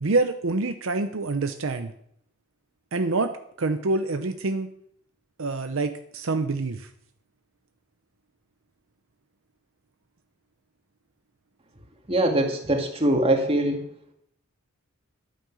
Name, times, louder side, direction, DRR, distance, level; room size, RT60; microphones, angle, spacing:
voice 1, 0.0-1.9 2.9-4.7 5.4-6.9, right 3 dB, 65° right, 8 dB, 0.7 m, -26 dB
voice 2, 12.1-13.8, right 1 dB, 25° right, 3 dB, 2.0 m, -22 dB
12.0 x 9.4 x 6.3 m, 0.71 s
head